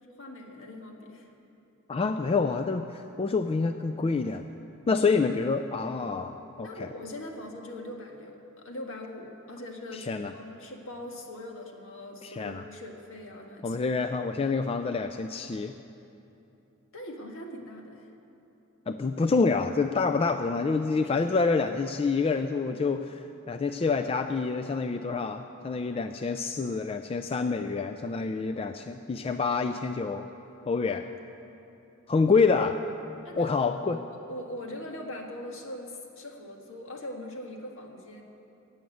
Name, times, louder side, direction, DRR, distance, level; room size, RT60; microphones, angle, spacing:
voice 1, 0.1-1.3 6.6-13.8 16.9-18.1 33.2-34.0 34.3-38.2, left 1 dB, 65° left, 2 dB, 1.7 m, -41 dB
voice 2, 1.9-4.4 4.9-6.9 10.1-10.3 12.2-12.6 13.6-15.7 18.9-30.3 30.7-31.1 32.1-32.8 33.4-34.0, left 4 dB, 25° left, 7 dB, 0.3 m, -27 dB
16.0 x 7.3 x 9.2 m, 2.9 s
head